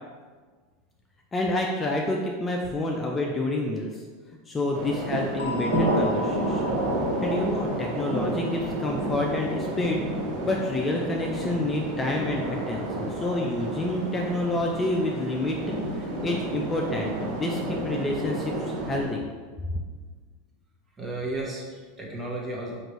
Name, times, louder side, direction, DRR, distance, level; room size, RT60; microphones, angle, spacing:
voice 1, 1.3-4.0 4.5-6.8 7.2-10.0 10.4-15.6 16.0-19.2, left 1 dB, 20° left, -1 dB, 0.4 m, -28 dB
sound 1, 4.7-19.1, right 1 dB, 75° right, 1.3 m, -30 dB
sound 2, 5.4-10.0, left 3 dB, 90° left, 0.3 m, -39 dB
voice 2, 21.0-22.8, right 2 dB, 20° right, -3 dB, 1.1 m, -33 dB
4.5 x 2.6 x 3.0 m, 1.5 s
hypercardioid pair, 95°, 0 cm